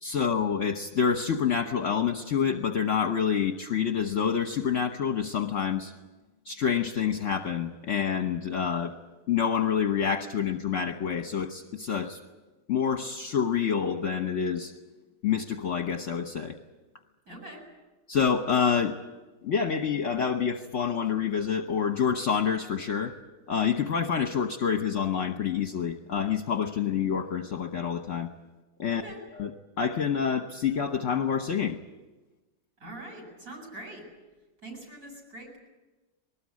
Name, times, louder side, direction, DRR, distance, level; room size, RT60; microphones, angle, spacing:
voice 1, 0.0-5.9 6.4-8.9 9.3-12.2 12.7-14.7 15.2-16.6 18.1-19.0 19.4-23.1 23.5-28.3 28.8-29.0 29.3-29.5 29.8-31.8, left 7 dB, 50° left, 6 dB, 1.3 m, -27 dB
voice 2, 17.3-17.6 28.9-29.2 32.8-34.1 34.6-35.6, right 1 dB, 45° right, 1 dB, 8.0 m, -43 dB
21.0 x 19.5 x 9.6 m, 1.2 s
omnidirectional pair, 2.0 m